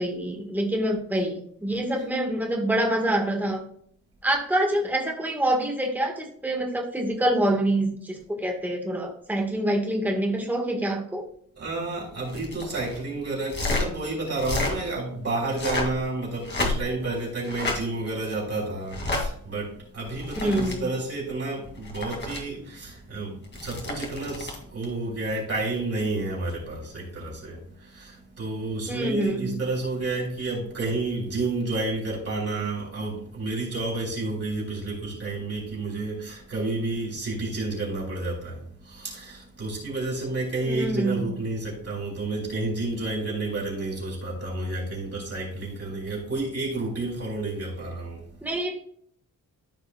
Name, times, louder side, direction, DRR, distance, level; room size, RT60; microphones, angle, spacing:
voice 1, 0.0-3.6 4.2-11.2 20.4-20.9 28.9-29.6 40.6-41.3 48.4-48.8, right 1 dB, 5° right, 2 dB, 1.4 m, -26 dB
voice 2, 11.6-48.4, right 2 dB, 45° right, -4 dB, 3.5 m, -30 dB
sound 1, 12.2-13.0 13.5-13.9 14.3-14.7 15.4-16.0 16.4-17.0 17.4-17.8 18.9-19.2 20.0-20.8 21.6-22.4 23.4-24.6 26.5-26.7, left 2 dB, 30° left, 2.3 m, -30 dB
14.0 x 5.0 x 2.2 m, 0.64 s
wide cardioid pair, 155°, 35 cm